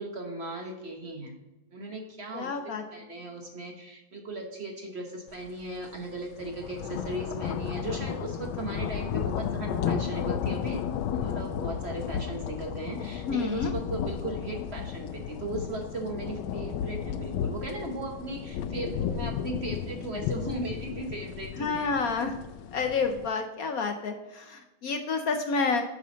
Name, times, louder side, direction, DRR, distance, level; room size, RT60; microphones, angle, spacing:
voice 1, 0.0-1.3 1.7-2.5 2.9-21.9, right 2 dB, 40° right, 2 dB, 1.1 m, -37 dB
voice 2, 2.3-2.8 13.3-13.7 21.6-22.3 22.7-25.8, left 4 dB, 65° left, 6 dB, 0.9 m, -29 dB
sound 1, 5.5-5.6 6.0-23.3, left 8 dB, 90° left, 1.4 m, -33 dB
8.5 x 5.7 x 3.8 m, 1.1 s
omnidirectional pair, 2.1 m